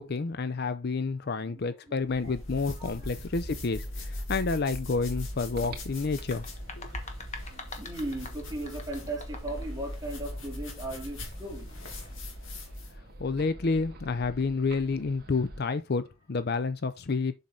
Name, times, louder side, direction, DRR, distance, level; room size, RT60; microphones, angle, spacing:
voice 1, 0.0-6.4 6.8-6.9 13.2-17.3, left 4 dB, 50° left, 0.5 m, -29 dB
voice 2, 1.2-1.6 1.9-2.0 2.2-2.3 2.8-3.1 7.5-11.8, right 1 dB, 15° right, 3.0 m, -38 dB
sound 1, 2.0-13.0, left 1 dB, 65° left, 2.7 m, -39 dB
sound 2, 5.1-15.7, right 1 dB, 45° right, 2.2 m, -50 dB
sound 3, 6.0-9.7, left 4 dB, 35° left, 1.3 m, -44 dB
7.5 x 5.6 x 3.8 m
head